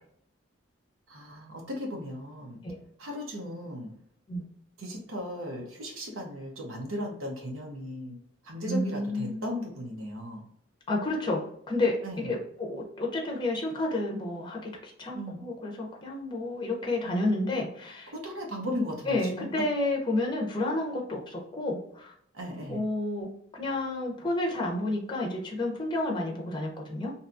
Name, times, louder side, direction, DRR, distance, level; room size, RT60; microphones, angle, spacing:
voice 1, 1.1-2.6 3.0-3.9 4.8-8.2 8.4-10.4 12.0-12.3 15.1-15.4 18.1-19.6 22.3-22.8, left 1 dB, 85° right, 0 dB, 0.7 m, -36 dB
voice 2, 8.7-9.6 10.9-18.1 19.1-22.1 22.7-27.1, left 2 dB, 20° left, -1 dB, 0.5 m, -30 dB
2.7 x 2.2 x 2.5 m, 0.67 s
head